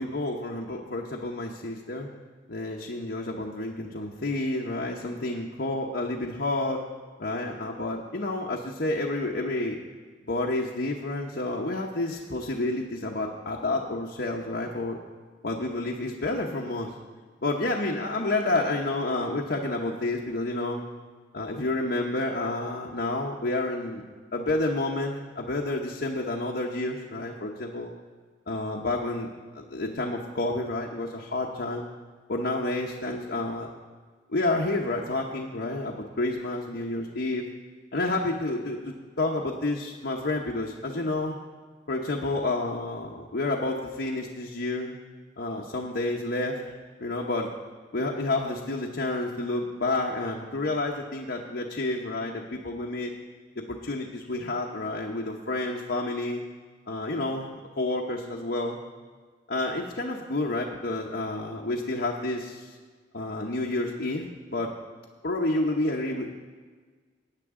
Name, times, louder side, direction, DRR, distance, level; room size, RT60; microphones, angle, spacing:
voice 1, 0.0-2.1 2.5-6.8 7.2-9.8 10.3-15.0 15.4-16.9 17.4-20.8 21.3-24.0 24.3-27.9 28.5-29.3 29.5-31.9 32.3-33.7 34.3-37.4 37.9-41.4 41.9-44.9 45.4-46.6 47.0-47.5 47.9-53.1 53.6-56.4 56.9-57.5 57.8-58.8 59.5-62.7 63.1-64.7 65.2-66.3, left 2 dB, 60° left, -1 dB, 0.9 m, -29 dB
16.5 x 9.2 x 3.7 m, 1.5 s
head